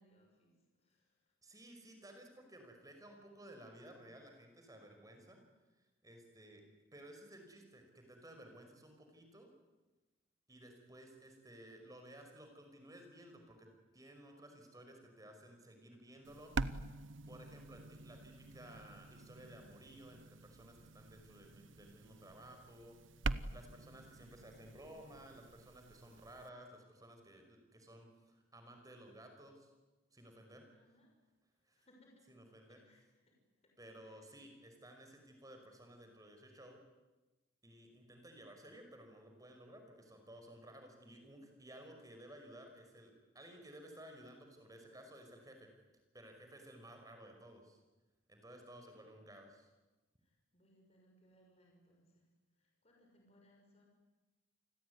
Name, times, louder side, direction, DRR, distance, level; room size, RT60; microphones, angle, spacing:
voice 1, 0.0-1.3 24.3-24.5 30.7-31.1 31.5-34.5 48.8-49.3 50.2-53.9, equal, 30° left, 0 dB, 6.5 m, -70 dB
voice 2, 1.4-5.4 6.0-6.6 6.9-9.5 10.5-13.7 13.9-16.8 17.3-23.0 23.5-29.7 30.1-30.6 31.7-31.8 32.3-32.8 33.8-36.8 37.6-45.7 46.1-47.8 48.3-49.7, right 1 dB, 15° right, 4 dB, 5.5 m, -56 dB
sound 1, 16.2-26.5, right 3 dB, 65° right, 0.9 m, -45 dB
29.0 x 21.0 x 9.7 m, 1.1 s
head